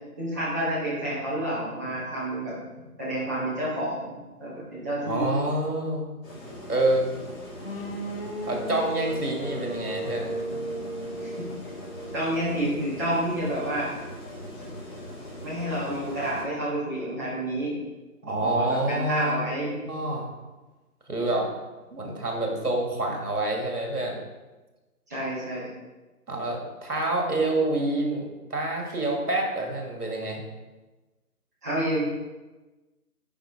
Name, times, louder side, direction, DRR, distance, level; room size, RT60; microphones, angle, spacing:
voice 1, 0.2-2.5 3.0-5.3 11.2-11.3 12.1-13.9 15.4-17.7 18.3-19.7 25.1-25.7 31.6-32.0, right 1 dB, 10° right, -10 dB, 1.4 m, -29 dB
voice 2, 5.0-6.1 6.7-7.1 8.5-10.6 18.2-20.3 21.1-21.5 21.9-24.2 26.3-30.4, right 2 dB, 70° right, 0 dB, 2.3 m, -27 dB
sound 1, 6.2-16.4, left 1 dB, 15° left, 2.3 m, -41 dB
sound 2, 7.6-13.5, right 1 dB, 35° left, 0.9 m, -36 dB
10.0 x 5.2 x 3.6 m, 1.2 s
figure-of-eight pair, 160°, 47 cm